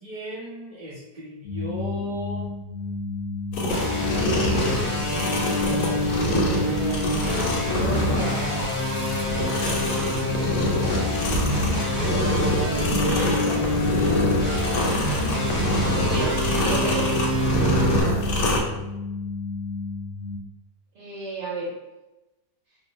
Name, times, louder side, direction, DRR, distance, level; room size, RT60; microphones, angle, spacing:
voice 1, 0.0-2.4 3.9-6.0 6.5-9.0 9.3-9.8 17.3-18.8, right 1 dB, 25° right, -7 dB, 0.9 m, -36 dB
sound 1, 1.4-20.4, left 4 dB, 60° left, 0.8 m, -32 dB
sound 2, 3.5-18.6, left 1 dB, 85° left, 1.2 m, -26 dB
sound 3, 3.7-18.0, left 1 dB, 25° left, 0.4 m, -27 dB
voice 2, 12.6-14.3 16.0-17.0 20.9-21.7, right 2 dB, 60° right, -6 dB, 0.8 m, -32 dB
2.8 x 2.0 x 3.1 m, 1.0 s
omnidirectional pair, 1.8 m